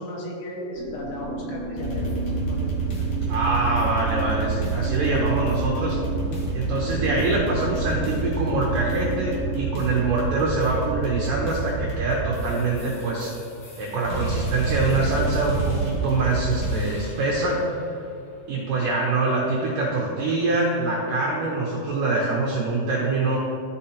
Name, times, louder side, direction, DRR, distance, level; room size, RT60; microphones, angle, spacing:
voice 1, 0.0-3.2 4.8-5.4, left 1 dB, 85° left, -3 dB, 3.7 m, -36 dB
sound 1, 0.7-9.8, right 2 dB, 65° right, 1.2 m, -33 dB
sound 2, 1.8-17.3, right 3 dB, 60° left, 2.1 m, -28 dB
voice 2, 3.3-6.0 6.5-13.3 13.8-17.7 18.5-23.4, right 3 dB, 80° right, -3 dB, 1.9 m, -24 dB
13.5 x 5.3 x 2.9 m, 2.9 s
omnidirectional pair, 5.1 m